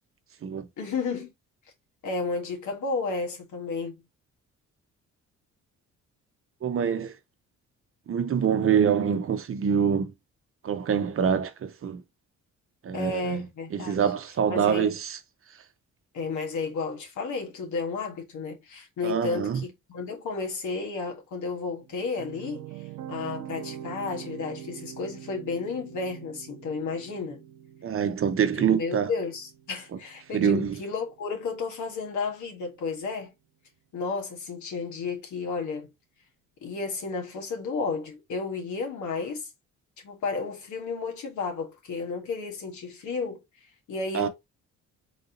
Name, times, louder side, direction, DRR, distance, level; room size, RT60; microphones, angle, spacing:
voice 1, 0.8-1.3 2.0-3.9 12.9-14.0 14.5-14.9 16.1-27.4 28.7-33.3 33.9-35.9 36.6-39.5 40.0-43.4 43.9-44.3, left 4 dB, 75° left, 1.7 m, -32 dB
voice 2, 6.6-7.2 8.1-10.1 10.6-12.0 12.8-13.4 13.7-15.2 19.0-19.6 27.8-29.1 30.3-30.7 44.1-44.3, right 7 dB, 45° right, 0.8 m, -25 dB
sound 1, 21.8-30.9, right 10 dB, 90° right, 0.9 m, -44 dB
4.0 x 2.7 x 3.8 m
cardioid pair, 90°, 30 cm